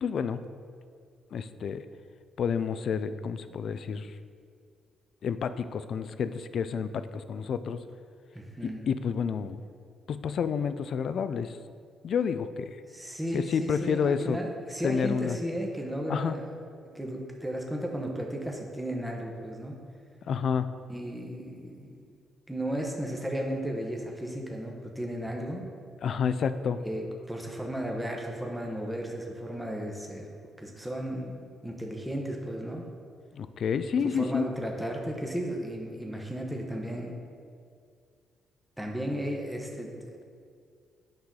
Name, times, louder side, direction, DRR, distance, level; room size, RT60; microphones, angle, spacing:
voice 1, 0.0-0.5 1.3-1.8 2.4-4.1 5.2-7.8 8.6-9.6 10.1-11.6 12.0-12.8 13.3-14.4 14.8-15.4 16.1-16.4 20.3-20.8 26.0-26.8 33.3-34.5, left 6 dB, 60° left, 12 dB, 0.4 m, -29 dB
voice 2, 8.3-8.8 12.9-16.5 16.9-19.8 20.9-22.0 22.5-25.6 26.8-32.8 34.0-37.2 38.8-40.1, equal, 5° right, 0 dB, 1.0 m, -34 dB
8.7 x 5.7 x 3.8 m, 2.2 s
cardioid pair, 90°, 0 cm